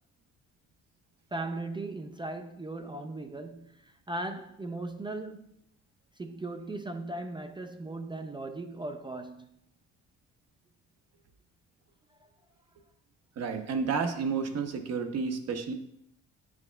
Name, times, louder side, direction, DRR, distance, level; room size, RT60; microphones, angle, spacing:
voice 1, 1.3-5.5 6.2-9.6 12.1-12.2, right 2 dB, 15° right, 0.3 m, -38 dB
voice 2, 13.4-15.7, right 5 dB, 55° right, 0.8 m, -31 dB
9.4 x 4.8 x 2.2 m
cardioid pair, 90°, 30 cm